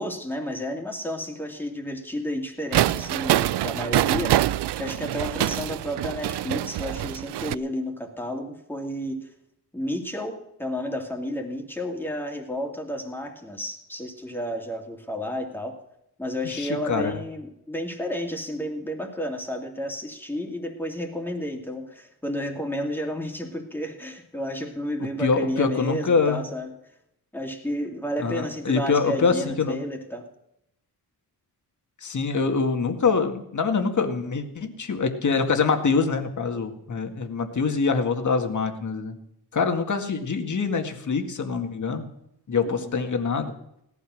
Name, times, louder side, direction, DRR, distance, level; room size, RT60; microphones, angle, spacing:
voice 1, 0.0-4.4 4.8-9.3 9.7-15.7 16.2-26.7 27.3-30.2 42.7-42.9, equal, 5° left, 2 dB, 2.5 m, -31 dB
sound 1, 2.7-7.5, right 14 dB, 85° right, 0.6 m, -25 dB
voice 2, 16.4-17.1 25.2-26.4 28.2-29.8 32.0-39.1 39.5-42.1 42.5-43.5, left 5 dB, 45° left, 6 dB, 2.0 m, -24 dB
17.5 x 12.5 x 6.4 m, 0.79 s
wide cardioid pair, 135°, 40 cm